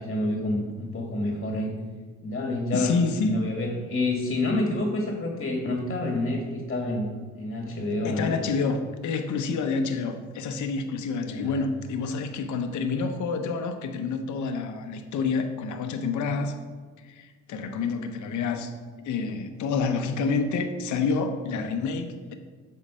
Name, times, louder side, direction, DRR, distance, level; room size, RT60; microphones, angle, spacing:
voice 1, 0.0-1.7 2.2-3.0 3.3-7.1 7.4-8.4 11.2-11.6 17.7-17.8, left 2 dB, 35° left, 1 dB, 1.5 m, -28 dB
voice 2, 2.7-3.5 8.0-16.6 17.0-18.7 19.0-22.3, left 4 dB, 75° left, 7 dB, 0.8 m, -28 dB
7.5 x 4.7 x 5.5 m, 1.5 s
cardioid pair, 90°, 30 cm